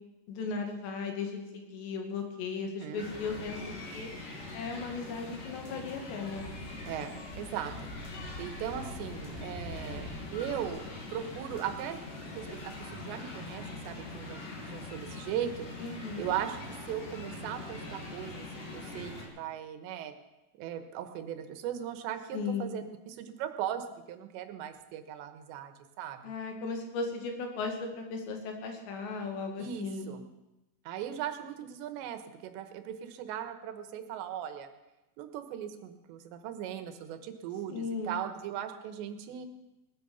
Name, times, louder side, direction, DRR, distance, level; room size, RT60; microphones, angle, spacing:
voice 1, 0.3-3.6 3.9-4.1 4.5-6.5 15.8-16.3 22.3-22.7 26.2-30.1 37.7-38.2, left 4 dB, 80° left, 3 dB, 4.3 m, -36 dB
voice 2, 2.8-3.1 6.9-7.7 8.4-12.0 12.2-15.8 16.2-16.6 16.9-20.1 20.6-26.3 29.6-30.2 30.9-34.7 35.2-39.5, right 10 dB, 90° right, 9 dB, 3.3 m, -38 dB
sound 1, 3.0-19.3, left 2 dB, 50° left, 3.9 m, -42 dB
18.5 x 10.5 x 6.9 m, 0.99 s
omnidirectional pair, 5.0 m